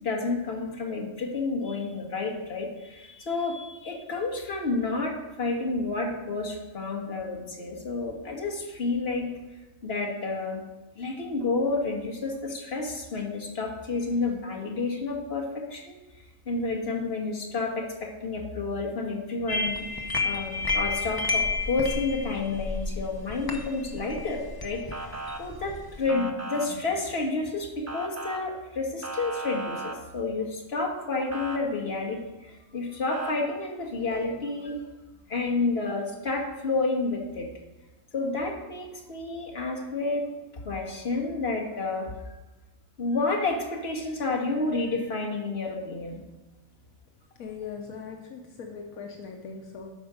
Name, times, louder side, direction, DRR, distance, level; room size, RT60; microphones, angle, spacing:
voice 1, 0.0-9.3 9.8-10.6 11.0-16.0 16.5-19.9 20.2-24.8 25.4-34.8 35.3-37.5 38.1-40.3 40.6-42.1 43.0-46.2, left 3 dB, 45° left, 0 dB, 1.8 m, -30 dB
sound 1, 19.5-26.1, left 3 dB, 20° left, 0.6 m, -31 dB
Motor vehicle (road) / Siren, 24.9-25.4 26.1-26.7 27.9-28.4 29.0-30.0 31.3-31.6 33.1-33.3, right 2 dB, 25° right, 0.3 m, -36 dB
voice 2, 47.4-49.9, left 5 dB, 75° left, 2 dB, 1.3 m, -40 dB
12.5 x 5.2 x 5.0 m, 1.1 s
omnidirectional pair, 1.5 m